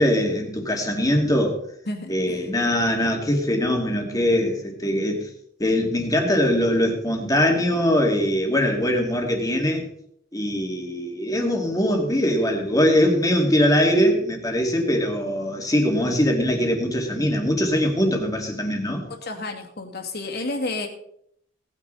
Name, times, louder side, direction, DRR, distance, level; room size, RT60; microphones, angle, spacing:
voice 1, 0.0-1.6 2.1-5.3 5.6-9.9 10.3-19.1, equal, 20° left, 2 dB, 2.5 m, -22 dB
voice 2, 1.9-2.4 19.1-20.9, left 2 dB, 55° left, 2 dB, 2.5 m, -31 dB
18.5 x 9.7 x 4.1 m, 0.70 s
head